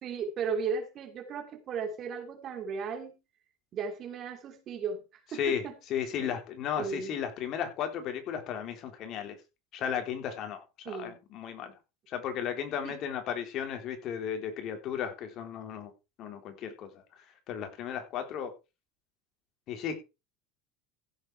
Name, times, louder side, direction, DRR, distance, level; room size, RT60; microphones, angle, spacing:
voice 1, 0.0-3.1 3.7-5.0 5.3-5.7 6.2-6.3 6.8-7.1 10.8-11.2 12.8-13.0, right 5 dB, 40° right, 3.0 m, -35 dB
voice 2, 5.9-9.4 9.7-11.7 12.1-15.9 16.2-16.9 17.5-18.5 19.7-20.0, left 8 dB, 50° left, 3.5 m, -34 dB
15.5 x 7.5 x 4.6 m
supercardioid pair, 125°, 0 cm